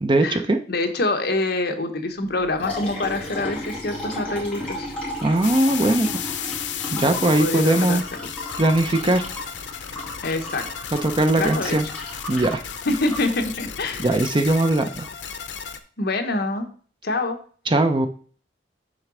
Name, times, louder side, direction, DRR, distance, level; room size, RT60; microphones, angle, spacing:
voice 1, 0.0-0.6 5.2-6.1 6.9-8.0 8.6-9.3 10.9-11.9 12.3-12.6 14.0-15.1 17.7-18.1, right 2 dB, 30° right, 8 dB, 0.7 m, -20 dB
voice 2, 0.7-4.9 6.9-8.0 10.2-10.9 11.4-11.8 12.8-14.1 16.0-16.7 17.0-17.4, left 2 dB, 60° left, 5 dB, 1.1 m, -26 dB
Liquid, 2.3-14.2, left 1 dB, 5° left, 2.8 m, -35 dB
sound 1, 5.4-15.8, left 9 dB, 85° left, 0.7 m, -33 dB
6.6 x 3.9 x 6.2 m, 0.43 s
head